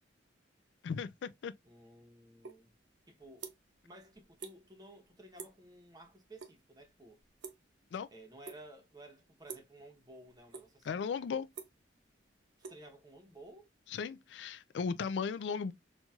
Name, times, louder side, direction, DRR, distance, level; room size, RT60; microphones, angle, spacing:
voice 1, 0.8-1.5 7.9-8.1 10.8-11.5 13.9-15.7, left 6 dB, 70° left, 0.3 m, -36 dB
voice 2, 1.6-2.8 3.1-3.5 3.8-7.2 8.1-11.1 12.7-13.7, right 1 dB, 20° right, 0.8 m, -55 dB
sound 1, 2.4-2.6 2.9-3.8 4.1-4.6 4.9-5.1 5.4-5.7 6.0-6.5 6.8-8.0 8.4-8.9 9.4-9.8 10.2-10.9 11.2-13.4, right 5 dB, 75° right, 0.6 m, -48 dB
4.2 x 2.9 x 2.3 m
head